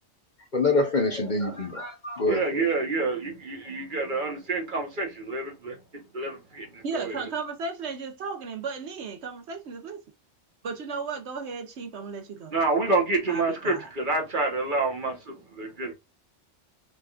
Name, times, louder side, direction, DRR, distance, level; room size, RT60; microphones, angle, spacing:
voice 1, 0.5-2.6, left 2 dB, 40° left, 1.0 m, -25 dB
voice 2, 2.3-5.7 6.1-7.2 12.5-15.9, right 3 dB, 45° right, 1.3 m, -28 dB
voice 3, 6.8-10.0 10.6-12.6 13.3-13.9, right 4 dB, 65° right, 1.0 m, -35 dB
5.6 x 3.5 x 2.4 m
omnidirectional pair, 1.3 m